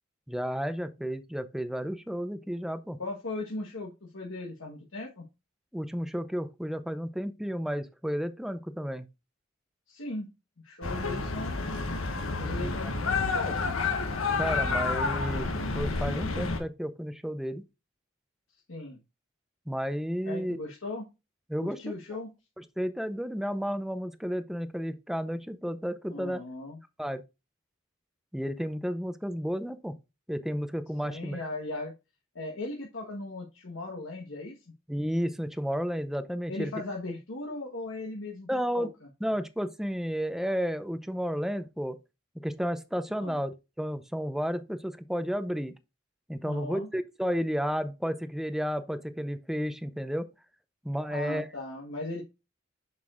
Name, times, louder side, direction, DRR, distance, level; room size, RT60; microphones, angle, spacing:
voice 1, 0.3-3.0 5.7-9.1 14.4-15.5 15.7-17.6 19.7-20.6 21.5-21.8 22.8-26.4 27.0-27.2 28.3-30.0 30.3-31.4 34.9-36.7 38.5-38.9 39.2-42.0 42.4-43.5 43.8-45.7 46.3-50.3 50.8-51.5, equal, ahead, 0.5 m, -32 dB
voice 2, 3.0-5.3 9.9-10.3 10.6-11.6 12.4-13.8 18.5-19.0 20.2-21.1 21.6-22.3 26.1-26.8 31.0-31.9 32.3-34.6 36.5-39.1 43.2-43.4 46.4-46.9 51.1-52.2, left 2 dB, 70° left, 1.3 m, -38 dB
sound 1, 10.8-16.6, left 4 dB, 85° left, 1.5 m, -29 dB
7.0 x 6.6 x 2.5 m
head